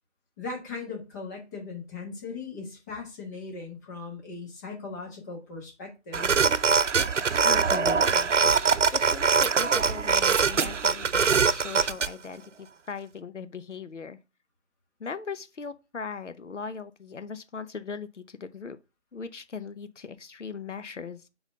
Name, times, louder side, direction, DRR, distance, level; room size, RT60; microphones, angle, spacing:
voice 1, 0.4-6.3, left 4 dB, 15° left, 1.2 m, -39 dB
sound 1, 6.1-12.1, right 5 dB, 85° right, 0.6 m, -23 dB
voice 2, 7.4-8.3 8.9-14.2 15.0-18.8 19.1-21.2, left 5 dB, 85° left, 0.7 m, -39 dB
5.3 x 4.0 x 5.7 m
figure-of-eight pair, 150°, 35 cm